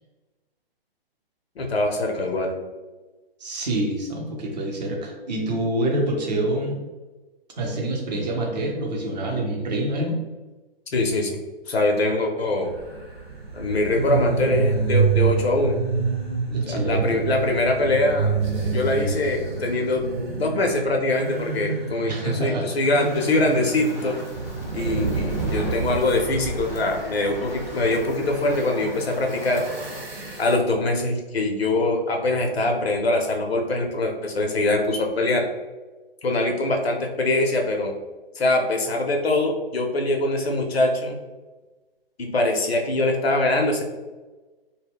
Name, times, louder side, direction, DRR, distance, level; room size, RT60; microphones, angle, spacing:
voice 1, 1.6-2.5 10.9-11.4 11.7-12.8 13.5-15.8 16.7-18.3 18.7-20.0 20.4-24.2 24.7-29.6 30.4-35.5 36.2-37.9 38.3-41.2 42.2-43.8, left 2 dB, 85° left, 2 dB, 0.6 m, -23 dB
voice 2, 3.4-6.8 7.6-10.2 16.5-17.2 22.1-22.7, right 1 dB, 45° right, 0 dB, 0.6 m, -26 dB
sound 1, 12.6-30.5, right 4 dB, 80° right, 0.8 m, -28 dB
Fire, 22.9-30.0, equal, 10° left, 0.4 m, -38 dB
2.1 x 2.1 x 3.4 m, 1.2 s
figure-of-eight pair, 130°, 30 cm